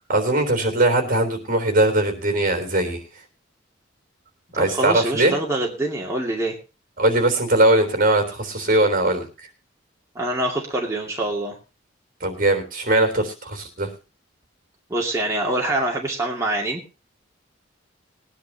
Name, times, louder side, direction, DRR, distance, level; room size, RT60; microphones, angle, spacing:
voice 1, 0.1-3.0 4.6-5.3 7.0-9.2 12.2-13.9, right 2 dB, 45° right, 5 dB, 3.6 m, -20 dB
voice 2, 4.5-6.6 10.1-11.6 14.9-16.8, right 1 dB, 15° right, -2 dB, 2.4 m, -25 dB
21.5 x 10.0 x 2.8 m, 0.31 s
head